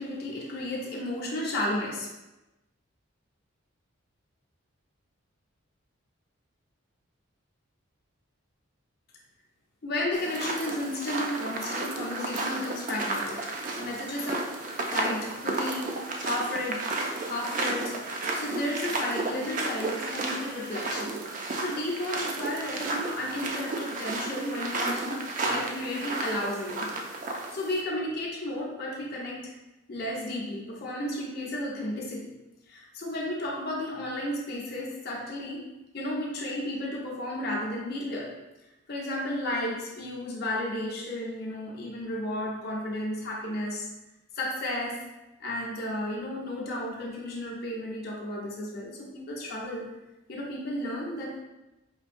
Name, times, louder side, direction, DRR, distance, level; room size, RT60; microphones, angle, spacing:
voice 1, 0.0-2.1 9.8-13.4 13.8-14.5 14.9-16.9 17.2-18.0 18.3-21.2 21.6-26.9 27.2-29.5 29.9-32.3 32.7-35.6 35.9-38.3 38.9-43.9 44.3-45.0 45.4-49.9 50.3-51.3, left 1 dB, 45° left, -4 dB, 0.7 m, -33 dB
sound 1, 10.1-27.8, right 2 dB, 35° right, 0.3 m, -33 dB
4.7 x 2.7 x 2.5 m, 1.0 s
head